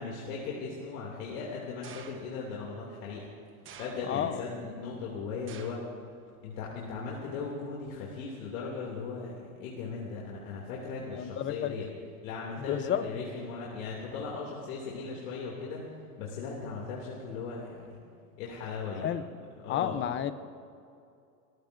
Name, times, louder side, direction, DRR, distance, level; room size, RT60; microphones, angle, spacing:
voice 1, 0.0-3.2 3.8-5.9 6.4-11.9 12.2-15.9 16.2-18.0 18.4-19.1 19.6-20.0, left 4 dB, 70° left, -3 dB, 2.8 m, -38 dB
sound 1, 1.8-2.5 3.6-4.4 5.5-6.0 6.3-6.8 7.7-7.8, right 7 dB, 30° right, 1.1 m, -50 dB
voice 2, 4.1-4.4 11.1-11.7 12.6-13.0 19.0-19.2 19.7-20.3, left 10 dB, 25° left, 12 dB, 0.7 m, -31 dB
28.0 x 14.5 x 2.6 m, 2.5 s
supercardioid pair, 125°, 43 cm